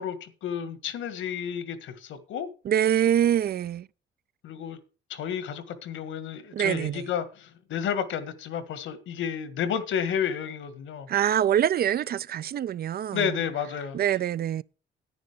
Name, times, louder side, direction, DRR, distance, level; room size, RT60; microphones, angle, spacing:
voice 1, 0.0-2.5 4.4-4.8 5.1-11.1 13.1-14.0, left 8 dB, 80° left, 1.7 m, -31 dB
voice 2, 2.6-3.9 6.5-7.0 11.1-13.4 13.9-14.6, right 10 dB, 50° right, 0.4 m, -25 dB
10.5 x 9.3 x 5.1 m
cardioid pair, 90°, 20 cm